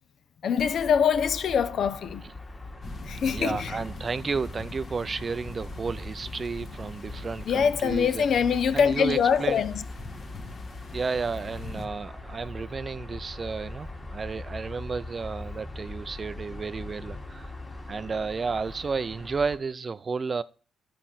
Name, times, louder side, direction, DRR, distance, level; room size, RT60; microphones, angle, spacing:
voice 1, 0.4-2.2 3.1-3.8 7.5-9.8, left 7 dB, 60° left, 0.6 m, -24 dB
sound 1, 0.6-19.6, left 2 dB, 25° left, 1.7 m, -41 dB
sound 2, 2.8-11.9, left 2 dB, 45° left, 1.4 m, -43 dB
voice 2, 3.3-8.2 8.7-9.6 10.9-17.5 17.9-20.4, right 4 dB, 35° right, 0.4 m, -32 dB
11.5 x 5.1 x 5.8 m
cardioid pair, 90°, 0 cm